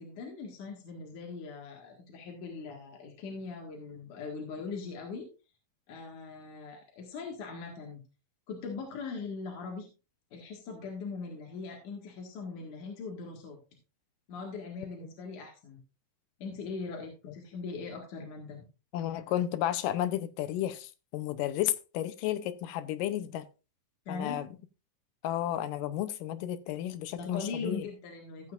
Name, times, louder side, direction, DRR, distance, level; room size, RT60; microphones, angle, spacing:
voice 1, 0.0-5.3 5.9-8.0 8.5-9.9 10.3-13.6 14.3-15.8 16.4-18.6 24.1-24.4 27.2-28.5, left 4 dB, 70° left, 3.2 m, -40 dB
voice 2, 18.9-23.5 24.1-24.5 25.2-27.8, left 12 dB, 90° left, 2.4 m, -32 dB
15.0 x 8.4 x 2.5 m
omnidirectional pair, 3.7 m